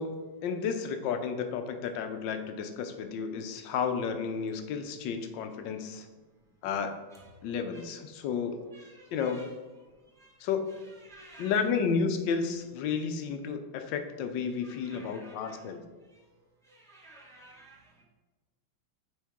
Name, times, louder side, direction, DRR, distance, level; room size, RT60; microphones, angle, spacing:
voice 1, 0.0-6.1 6.6-6.9 7.4-8.6 9.1-9.4 10.4-10.7 11.4-15.8, left 6 dB, 75° left, 7 dB, 1.3 m, -32 dB
voice 2, 6.4-6.7 6.9-8.3 8.6-11.7 13.0-13.2 14.4-18.0, right 2 dB, ahead, -3 dB, 0.8 m, -56 dB
9.3 x 3.7 x 3.6 m, 1.3 s
omnidirectional pair, 2.1 m